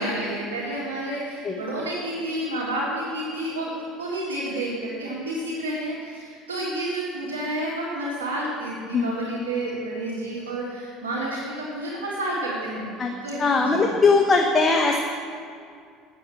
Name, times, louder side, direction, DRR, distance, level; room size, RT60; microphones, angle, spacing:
voice 1, 0.0-12.9 13.2-13.9, right 1 dB, 90° right, -8 dB, 2.2 m, -30 dB
voice 2, 13.4-15.0, left 4 dB, 25° left, 1 dB, 1.1 m, -20 dB
9.6 x 7.8 x 7.6 m, 2.3 s
hypercardioid pair, 75°, 0 cm